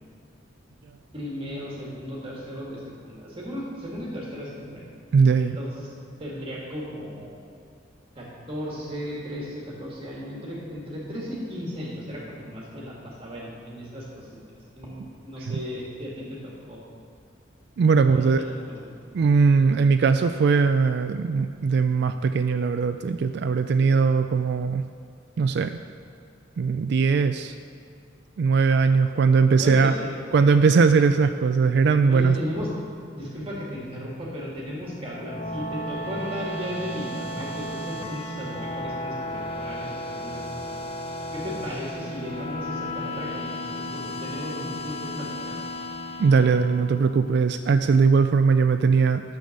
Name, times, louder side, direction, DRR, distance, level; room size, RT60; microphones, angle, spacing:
voice 1, 1.1-4.8 5.4-5.9 6.2-7.4 8.2-14.3 14.7-16.8 18.1-18.9 29.6-30.2 32.1-32.7 33.1-40.7 41.3-45.6, equal, 30° right, -4 dB, 1.8 m, -35 dB
voice 2, 5.1-5.6 15.5-15.6 17.8-18.4 19.1-24.8 25.4-25.8 26.6-27.5 28.4-29.9 30.3-32.4 46.2-49.2, right 5 dB, 60° right, 8 dB, 0.3 m, -20 dB
sound 1, 35.0-47.4, left 1 dB, 30° left, 0.7 m, -34 dB
10.5 x 7.0 x 6.5 m, 2.3 s
head